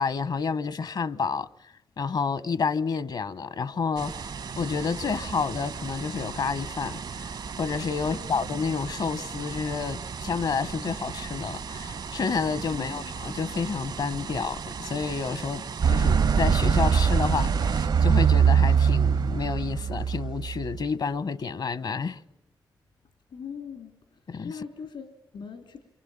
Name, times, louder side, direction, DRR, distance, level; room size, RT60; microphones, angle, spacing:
voice 1, 0.0-1.5 2.0-4.3 4.6-7.3 7.6-22.2 24.3-24.6, left 5 dB, 65° left, 1.0 m, -29 dB
sound 1, 4.0-17.9, right 5 dB, 70° right, 1.1 m, -37 dB
voice 2, 8.0-8.4 12.7-13.1 23.3-23.9 24.4-25.8, left 6 dB, 85° left, 2.7 m, -40 dB
sound 2, 15.8-20.8, right 6 dB, 85° right, 1.5 m, -22 dB
27.5 x 24.0 x 8.8 m
cardioid pair, 55°, 8 cm